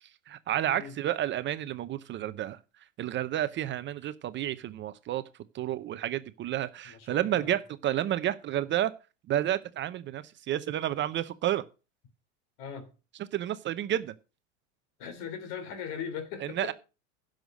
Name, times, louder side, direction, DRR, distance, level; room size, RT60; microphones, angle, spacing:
voice 1, 0.0-2.6 3.0-5.2 5.5-8.9 9.3-11.6 13.3-14.1 16.5-16.7, right 12 dB, 30° right, 0.7 m, -30 dB
voice 2, 6.9-7.6 12.6-12.9 15.0-16.7, left 7 dB, 55° left, 3.6 m, -39 dB
10.5 x 6.5 x 6.4 m
supercardioid pair, 120°, 39 cm